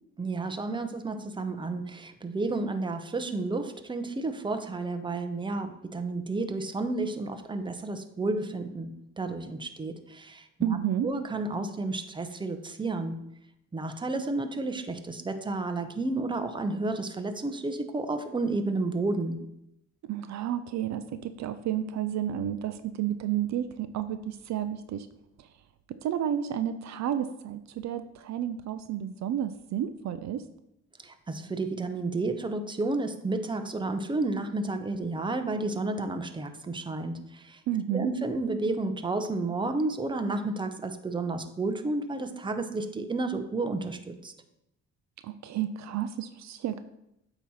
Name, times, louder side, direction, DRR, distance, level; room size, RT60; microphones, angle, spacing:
voice 1, 0.2-8.9 9.2-10.4 11.0-13.2 13.7-19.4 31.0-37.6 37.9-44.3, right 2 dB, 15° right, 8 dB, 0.7 m, -31 dB
voice 2, 10.6-11.1 20.0-25.1 25.4-25.5 25.9-30.4 37.7-38.1 45.2-46.8, right 10 dB, 65° right, 11 dB, 0.5 m, -31 dB
8.3 x 3.1 x 5.5 m, 0.82 s
cardioid pair, 90°, 30 cm